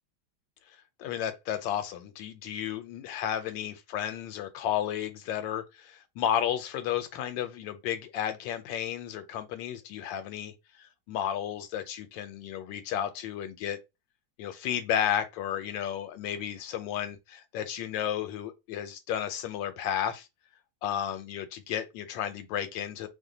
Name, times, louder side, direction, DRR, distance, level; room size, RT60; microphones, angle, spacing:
voice 1, 1.0-13.8 14.4-20.3 20.8-23.1, left 10 dB, 90° left, 1.3 m, -33 dB
3.0 x 2.1 x 3.8 m
omnidirectional pair, 2.0 m